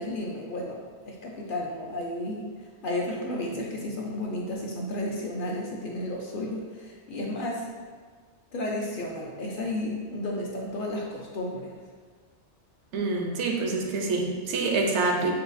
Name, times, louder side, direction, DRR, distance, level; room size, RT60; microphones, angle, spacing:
voice 1, 0.0-2.5 2.8-7.7 8.5-11.7, left 1 dB, 60° left, -2 dB, 0.6 m, -32 dB
voice 2, 12.9-15.3, right 3 dB, 80° right, 1 dB, 0.9 m, -26 dB
6.4 x 2.3 x 2.5 m, 1.5 s
omnidirectional pair, 1.2 m